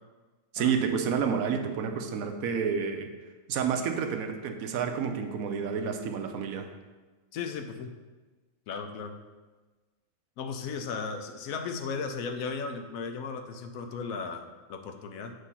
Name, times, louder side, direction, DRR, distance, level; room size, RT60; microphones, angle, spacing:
voice 1, 0.5-3.1 3.5-6.7, right 6 dB, 85° right, 6 dB, 1.1 m, -29 dB
voice 2, 7.3-8.0 8.7-9.1 10.4-14.4 14.7-15.3, left 5 dB, 80° left, 6 dB, 1.1 m, -35 dB
8.0 x 2.7 x 5.6 m, 1.3 s
omnidirectional pair, 1.5 m